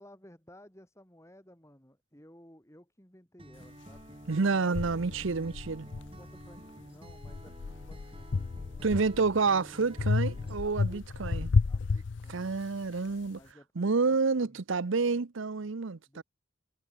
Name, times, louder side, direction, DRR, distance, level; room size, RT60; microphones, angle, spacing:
voice 1, 0.0-4.2 4.5-4.8 5.9-9.3 10.6-12.5 13.4-13.7 14.0-14.6 16.1-16.2, equal, 15° left, 4.0 m, -56 dB
Acoustic guitar, 3.4-10.6, right 1 dB, 25° right, 4.7 m, -50 dB
sound 1, 3.9-4.0 4.7-6.6 7.1-9.4 10.0-12.8, left 4 dB, 60° left, 0.5 m, -32 dB
voice 2, 4.3-5.9 8.8-11.5 12.3-13.4 13.8-16.2, right 4 dB, 70° right, 0.7 m, -29 dB
head